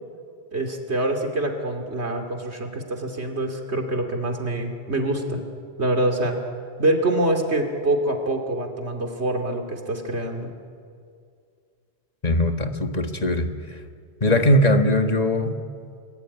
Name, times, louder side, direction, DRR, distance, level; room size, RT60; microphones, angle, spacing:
voice 1, 0.5-5.4 5.8-6.4 6.8-10.5, right 1 dB, 75° right, 4 dB, 3.0 m, -25 dB
voice 2, 12.2-13.5 14.2-15.5, left 1 dB, 35° left, 6 dB, 1.7 m, -20 dB
28.5 x 20.5 x 9.9 m, 2.3 s
omnidirectional pair, 1.1 m